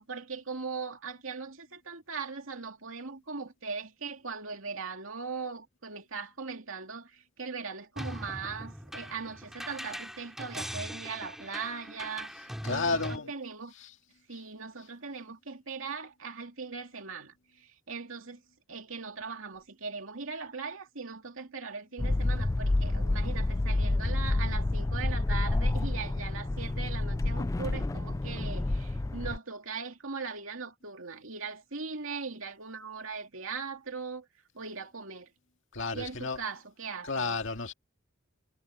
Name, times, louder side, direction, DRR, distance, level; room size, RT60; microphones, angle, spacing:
voice 1, 0.0-13.7 14.3-18.4 18.7-34.3 34.5-35.3 35.9-37.4, right 5 dB, 70° right, 2.7 m, -40 dB
sound 1, 8.0-13.2, equal, ahead, 3.2 m, -41 dB
voice 2, 12.6-13.3 13.8-13.9 35.7-36.4 37.0-37.7, left 4 dB, 60° left, 2.1 m, -32 dB
sound 2, 22.0-29.4, left 2 dB, 15° left, 0.3 m, -29 dB
head